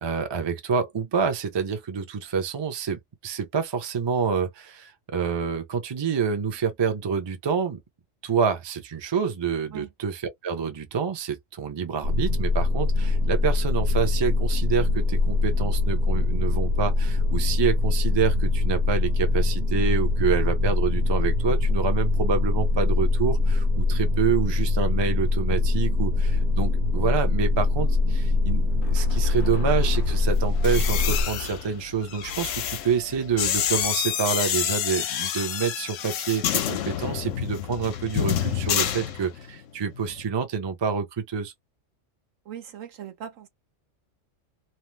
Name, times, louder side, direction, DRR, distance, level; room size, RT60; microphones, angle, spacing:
voice 1, 0.0-7.8 8.2-41.5, right 6 dB, 30° right, 0.5 m, -27 dB
sound 1, 12.0-31.2, left 3 dB, 60° right, 1.0 m, -23 dB
sound 2, 28.5-33.9, left 6 dB, 60° left, 0.5 m, -39 dB
sound 3, 30.5-39.6 39.9-40.2, left 10 dB, 75° left, 0.9 m, -28 dB
voice 2, 42.5-43.5, right 9 dB, 85° right, 1.2 m, -39 dB
2.8 x 2.0 x 3.1 m
omnidirectional pair, 1.3 m